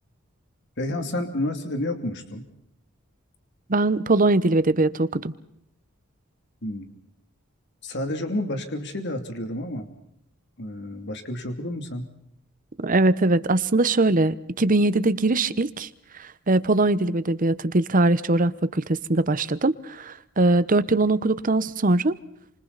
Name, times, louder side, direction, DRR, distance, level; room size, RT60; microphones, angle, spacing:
voice 1, 0.8-2.5 6.6-6.9 7.8-9.9 10.6-12.1, left 1 dB, 60° left, 6 dB, 2.7 m, -30 dB
voice 2, 3.7-5.3 12.8-15.9 16.5-22.2, right 2 dB, 40° right, 14 dB, 1.0 m, -21 dB
28.5 x 26.5 x 4.1 m, 0.75 s
head